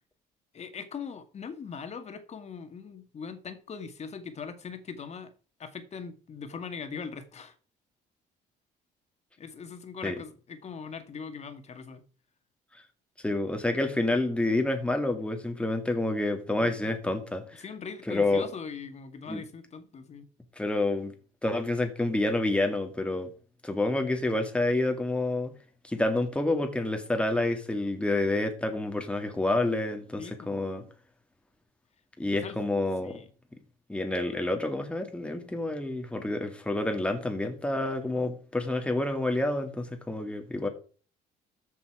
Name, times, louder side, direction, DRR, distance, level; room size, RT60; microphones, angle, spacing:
voice 1, 0.5-5.3 5.6-7.6 9.4-12.0 16.6-16.9 17.6-20.3 30.2-30.6 32.3-32.6 33.0-33.3 38.1-38.3, left 5 dB, 40° left, 2.1 m, -41 dB
voice 2, 13.2-17.6 18.1-18.4 19.3-19.4 20.6-21.1 21.4-23.3 23.6-25.5 25.8-30.8 32.2-33.2 33.9-40.7, left 2 dB, 5° left, 2.1 m, -28 dB
13.5 x 7.1 x 4.9 m
cardioid pair, 110°, 17 cm